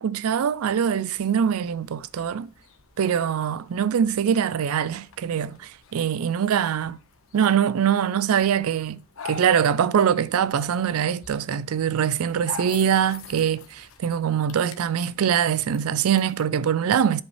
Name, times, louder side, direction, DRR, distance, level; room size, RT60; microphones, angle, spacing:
voice 1, 0.0-2.5 3.0-7.0 7.3-17.2, right 8 dB, 80° right, 0.4 m, -23 dB
sound 1, 0.5-16.5, left 5 dB, 70° left, 1.2 m, -46 dB
10.5 x 5.3 x 3.1 m
head